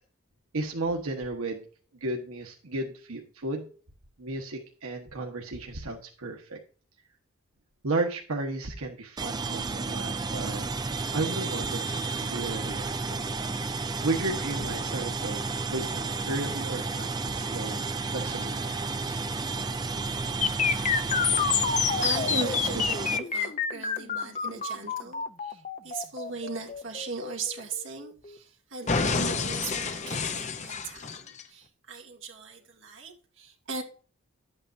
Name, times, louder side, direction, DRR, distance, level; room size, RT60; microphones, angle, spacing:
voice 1, 0.5-1.6 2.0-3.7 4.2-6.6 7.8-13.2 14.0-15.4 15.7-17.8 18.1-19.2, right 2 dB, 90° right, 1.3 m, -34 dB
sound 1, 9.2-23.2, right 3 dB, 20° right, 0.5 m, -32 dB
sound 2, 20.4-28.4 28.9-31.4, left 6 dB, 35° left, 0.7 m, -28 dB
voice 2, 20.7-21.4 21.9-33.8, right 3 dB, 60° right, 2.4 m, -38 dB
11.5 x 8.7 x 2.7 m
head